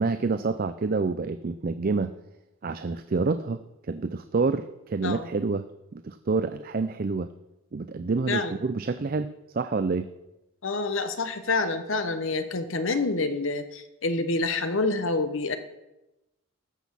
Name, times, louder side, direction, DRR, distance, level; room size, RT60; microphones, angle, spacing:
voice 1, 0.0-2.1 2.6-5.6 5.9-7.3 7.7-10.1, right 4 dB, 45° right, 11 dB, 0.4 m, -28 dB
voice 2, 10.6-15.6, left 3 dB, 65° left, 9 dB, 1.1 m, -27 dB
14.0 x 6.2 x 7.2 m, 0.95 s
head